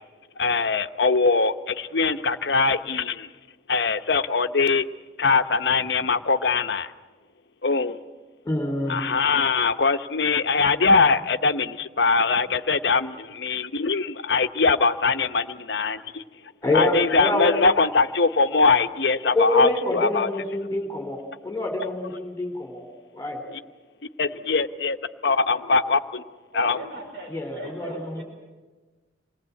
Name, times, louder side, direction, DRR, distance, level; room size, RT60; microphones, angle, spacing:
voice 1, 0.4-3.3 3.7-4.9 5.2-6.9 7.6-8.0 8.9-16.2 16.7-20.3 24.2-25.0 25.2-26.2 26.5-26.8, left 4 dB, 60° left, 9 dB, 0.9 m, -22 dB
voice 2, 5.6-6.0 12.3-12.4 12.8-12.9 26.5-28.2, right 2 dB, 60° right, -1 dB, 5.0 m, -40 dB
voice 3, 8.5-9.0 16.6-17.7 19.2-22.8 23.1-23.4 27.3-28.2, left 2 dB, 15° left, 3 dB, 3.3 m, -26 dB
27.0 x 19.5 x 8.4 m, 1.3 s
head